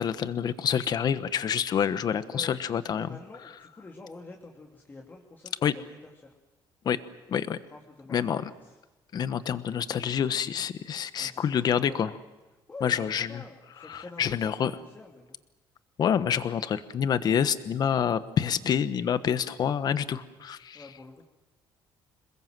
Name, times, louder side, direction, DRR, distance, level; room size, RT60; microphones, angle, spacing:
voice 1, 0.0-3.1 5.6-5.7 6.8-7.0 7.3-7.6 8.1-8.4 9.1-12.1 12.8-13.3 13.8-14.7 16.0-20.8, left 8 dB, 50° left, 13 dB, 1.2 m, -27 dB
voice 2, 2.9-6.3 7.7-8.8 11.2-12.0 12.7-15.4 20.7-21.2, left 3 dB, 20° left, 1 dB, 2.9 m, -47 dB
27.5 x 21.0 x 7.7 m, 1.1 s
cardioid pair, 125°, 9 cm